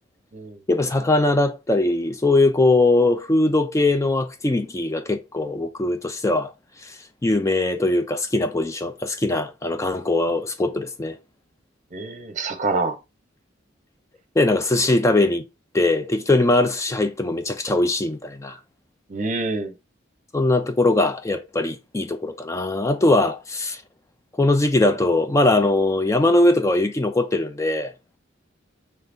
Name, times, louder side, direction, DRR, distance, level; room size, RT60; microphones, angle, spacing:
voice 1, 0.7-6.5 6.8-11.2 14.4-15.5 15.7-18.6 20.3-23.8 24.4-27.9, left 2 dB, 15° left, 0.4 m, -21 dB
voice 2, 11.9-13.0 19.1-19.7, right 3 dB, 40° right, 0.8 m, -26 dB
5.6 x 3.3 x 2.6 m
head